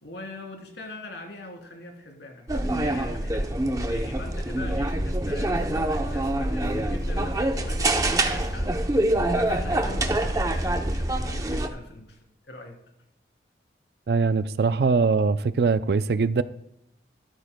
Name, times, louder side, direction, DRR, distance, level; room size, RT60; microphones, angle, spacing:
voice 1, 0.0-3.4 3.8-8.7 9.3-12.2 12.4-12.8, left 2 dB, 85° left, 3.0 m, -41 dB
sound 1, 2.5-11.7, right 1 dB, 20° right, 0.7 m, -25 dB
Guitar / Drum, 5.5-11.1, left 1 dB, 55° left, 2.4 m, -47 dB
voice 2, 14.1-16.4, right 4 dB, 65° right, 0.4 m, -22 dB
13.0 x 12.0 x 2.2 m
head